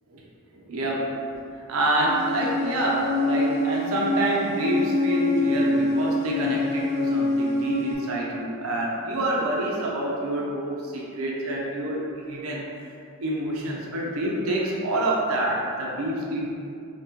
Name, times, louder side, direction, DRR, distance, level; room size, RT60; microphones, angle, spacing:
voice 1, 0.5-1.2 1.7-12.9 13.2-16.5, right 1 dB, 75° right, -3 dB, 0.5 m, -27 dB
sound 1, 2.0-7.9, left 2 dB, 55° left, 0.6 m, -25 dB
2.8 x 2.8 x 3.6 m, 2.5 s
head